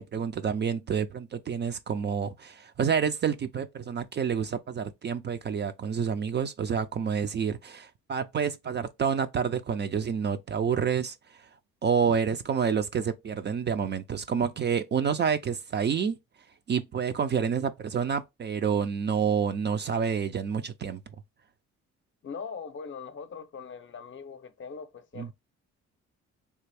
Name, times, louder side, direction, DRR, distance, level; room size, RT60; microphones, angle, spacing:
voice 1, 0.0-11.5 11.8-16.1 16.7-21.0 25.2-25.3, right 7 dB, 35° right, 0.4 m, -28 dB
voice 2, 22.2-25.3, left 5 dB, 40° left, 0.6 m, -41 dB
3.4 x 2.4 x 3.2 m
cardioid pair, 90°, 30 cm